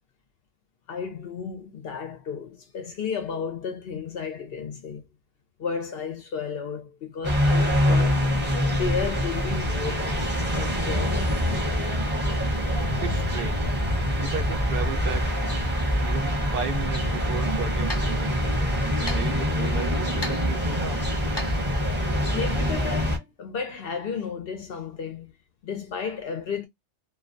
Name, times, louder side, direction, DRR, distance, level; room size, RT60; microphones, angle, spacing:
voice 1, 0.9-5.1 5.6-8.2 8.7-11.6 21.9-25.3 25.6-26.7, left 6 dB, 65° left, 0.7 m, -33 dB
sound 1, 7.2-23.2, equal, 10° right, 0.7 m, -25 dB
voice 2, 13.0-13.7 14.2-15.3 16.0-18.4 19.1-21.1, right 6 dB, 60° right, 0.7 m, -34 dB
sound 2, 17.9-22.4, left 2 dB, 25° left, 0.9 m, -40 dB
2.3 x 2.1 x 2.5 m
omnidirectional pair, 1.2 m